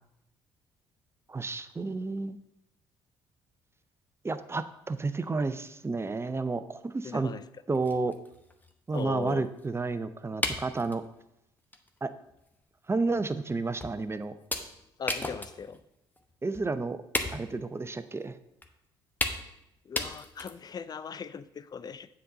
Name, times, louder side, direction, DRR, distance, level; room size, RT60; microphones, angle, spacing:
voice 1, 1.3-2.4 4.2-7.3 7.7-8.1 8.9-11.0 12.0-12.1 12.9-14.3 16.4-17.0 17.3-18.4, right 3 dB, 20° right, 12 dB, 0.7 m, -31 dB
voice 2, 7.0-7.4 8.9-9.5 15.0-15.8 19.9-22.1, left 6 dB, 35° left, 15 dB, 0.5 m, -39 dB
sound 1, 7.4-7.5 7.7-9.6 10.4-11.1 11.7-11.9 12.3-12.4 13.1-13.2 13.8-14.1 14.5-15.8 16.2-16.3 16.5-16.7 17.1-17.7 18.6-18.7 19.2-19.6 20.0-20.7, left 2 dB, 15° left, 1.1 m, -34 dB
7.5 x 4.1 x 6.7 m, 0.84 s
hypercardioid pair, 55°, 12 cm